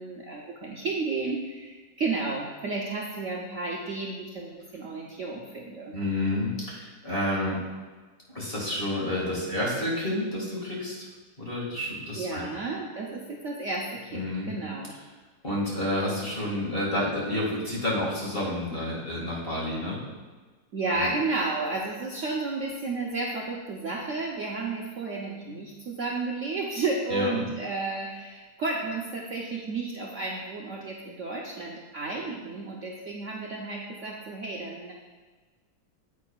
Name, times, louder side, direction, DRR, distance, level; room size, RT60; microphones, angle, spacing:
voice 1, 0.0-5.9 12.2-14.9 20.7-34.9, right 3 dB, 55° right, -2 dB, 0.9 m, -32 dB
voice 2, 5.9-7.6 8.3-11.1 11.4-12.4 14.1-14.5 15.4-20.0 21.0-21.1 27.1-27.4, left 1 dB, 30° left, -4 dB, 2.1 m, -29 dB
9.3 x 8.3 x 2.4 m, 1.3 s
omnidirectional pair, 1.9 m